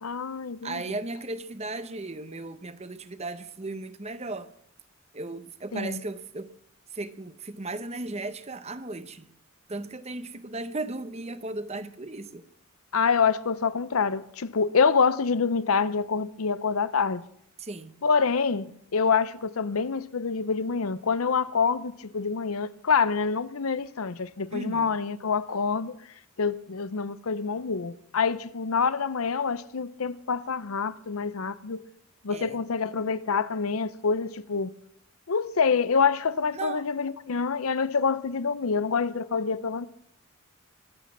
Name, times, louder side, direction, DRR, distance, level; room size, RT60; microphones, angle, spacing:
voice 1, 0.0-0.9 5.7-6.0 12.9-17.2 18.0-26.0 26.4-31.9 32.2-34.7 35.3-39.9, left 5 dB, 80° left, 0.7 m, -26 dB
voice 2, 0.6-4.5 5.1-6.5 6.9-9.3 9.7-12.5 17.6-18.0 24.5-24.9 32.3-32.6 36.5-36.9, right 2 dB, 30° right, 0.9 m, -36 dB
23.5 x 8.3 x 7.3 m
head